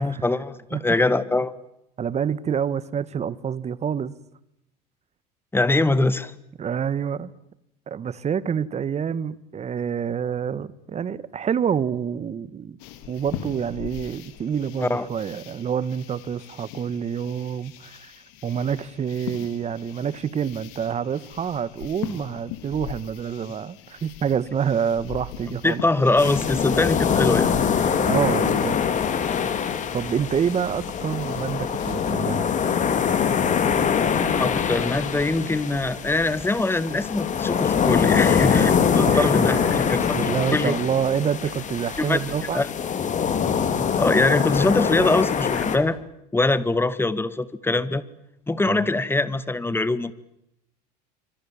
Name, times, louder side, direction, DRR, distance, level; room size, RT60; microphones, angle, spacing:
voice 1, 0.0-1.5 5.5-6.3 14.8-15.1 25.5-27.5 34.3-40.8 42.0-42.2 42.5-42.7 44.0-46.0 46.3-48.0 48.5-50.1, left 2 dB, 10° left, 1.8 m, -23 dB
voice 2, 2.0-4.1 6.6-7.3 7.9-12.8 13.1-18.1 18.4-25.8 28.0-28.9 29.9-32.5 39.0-42.6 48.7-48.9, right 7 dB, 30° right, 1.5 m, -27 dB
sound 1, 12.8-32.1, left 10 dB, 70° left, 3.6 m, -42 dB
sound 2, 26.2-45.8, left 7 dB, 35° left, 3.7 m, -23 dB
27.5 x 25.5 x 7.3 m
hypercardioid pair, 85°, 21 cm